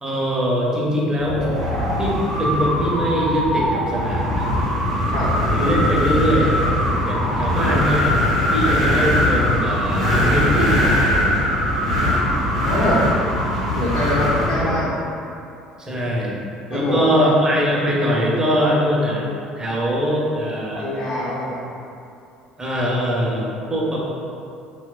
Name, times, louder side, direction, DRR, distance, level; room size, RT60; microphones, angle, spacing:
voice 1, 0.0-1.5 2.0-4.5 5.5-6.6 7.1-8.2 8.5-11.2 15.8-16.4 16.7-19.2 19.6-20.9 22.6-24.0, equal, 20° right, -4 dB, 0.5 m, -22 dB
Wind, 1.2-14.8, left 1 dB, 90° right, 0.5 m, -20 dB
voice 2, 7.5-7.9 12.6-13.0 13.8-14.9 16.7-17.3 20.7-21.6, left 1 dB, 50° left, -7 dB, 0.4 m, -24 dB
2.8 x 2.1 x 2.2 m, 2.7 s
figure-of-eight pair, 60°, 3 cm